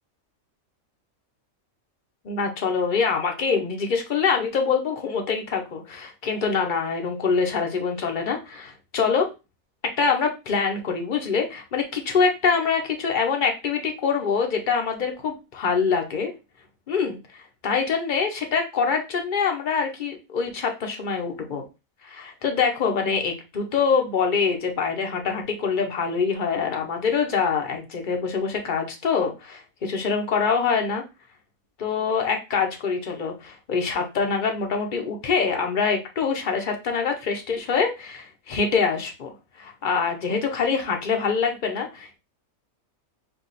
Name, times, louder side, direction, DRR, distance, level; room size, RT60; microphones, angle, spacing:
voice 1, 2.2-9.3 10.0-16.3 16.9-21.6 22.0-31.0 31.8-39.3 39.6-42.2, left 5 dB, 40° left, 3 dB, 0.9 m, -25 dB
4.7 x 2.4 x 4.0 m, 0.27 s
omnidirectional pair, 1.5 m